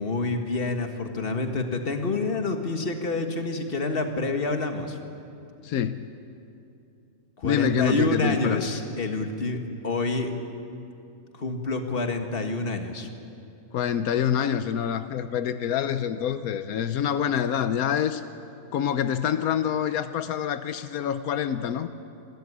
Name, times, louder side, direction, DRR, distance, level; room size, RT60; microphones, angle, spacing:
voice 1, 0.0-5.0 7.4-10.3 11.4-13.1, left 2 dB, 40° left, 5 dB, 1.8 m, -27 dB
voice 2, 5.6-6.1 7.4-8.7 13.7-18.2 18.7-21.9, left 9 dB, 85° left, 11 dB, 1.2 m, -26 dB
26.0 x 13.5 x 9.8 m, 2.7 s
omnidirectional pair, 1.5 m